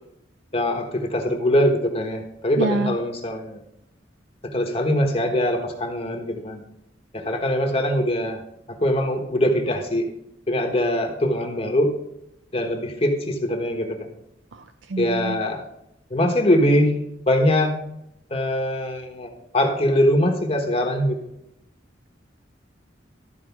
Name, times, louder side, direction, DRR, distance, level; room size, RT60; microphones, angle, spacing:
voice 1, 0.5-3.6 4.4-6.6 7.1-8.4 8.7-10.1 10.5-11.9 12.5-14.1 15.0-15.6 16.1-16.9 17.3-17.7 18.3-21.2, left 1 dB, 35° left, 4 dB, 1.3 m, -22 dB
voice 2, 2.6-3.0 14.5-15.4, right 2 dB, 85° right, 8 dB, 0.6 m, -27 dB
13.0 x 4.6 x 5.9 m, 0.79 s
head